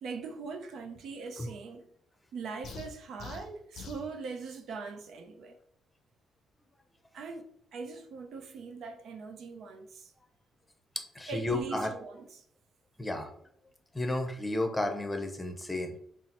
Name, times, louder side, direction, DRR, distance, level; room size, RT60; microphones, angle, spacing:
voice 1, 0.0-1.9 2.3-5.6 7.1-10.1 11.3-12.4, right 4 dB, 70° right, 0.5 m, -41 dB
sound 1, 2.6-4.1, left 5 dB, 70° left, 0.5 m, -44 dB
voice 2, 11.1-11.9 13.0-13.3 13.9-16.0, left 1 dB, 10° left, 0.7 m, -32 dB
5.5 x 2.0 x 2.9 m
cardioid pair, 90°, 0 cm